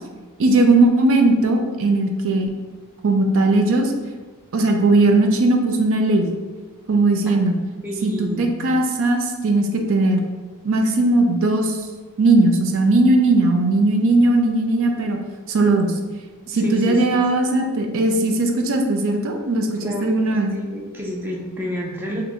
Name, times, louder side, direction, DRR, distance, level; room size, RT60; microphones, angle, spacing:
voice 1, 0.4-2.5 3.0-3.9 4.5-6.3 6.9-7.5 8.0-10.2 10.6-11.8 12.2-15.2 15.5-15.9 16.5-20.5, right 2 dB, 65° right, 3 dB, 0.5 m, -18 dB
voice 2, 7.8-8.5 16.5-17.3 19.8-22.2, equal, 10° right, -2 dB, 0.4 m, -30 dB
4.4 x 2.6 x 2.7 m, 1.3 s
head